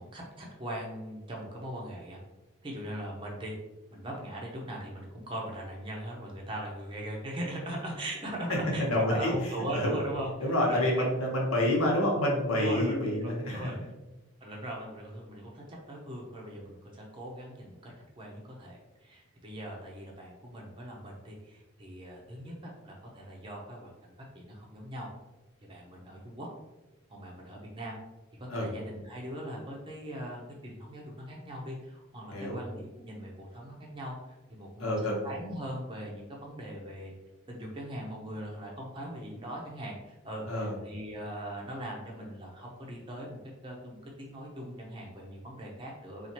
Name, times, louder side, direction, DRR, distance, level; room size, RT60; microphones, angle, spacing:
voice 1, 0.0-2.2 2.6-3.5 3.9-8.8 9.1-11.1 12.5-13.8 14.4-25.1 25.7-26.5 27.1-28.0 28.4-34.1 34.5-34.9 35.2-37.1 37.5-46.3, right 1 dB, 25° right, -2 dB, 0.5 m, -40 dB
voice 2, 8.8-9.3 9.7-9.9 10.4-13.7 28.5-28.7 32.3-32.6 34.8-35.2 40.5-40.7, left 1 dB, 85° left, -3 dB, 1.1 m, -28 dB
4.3 x 2.4 x 2.8 m, 1.1 s
head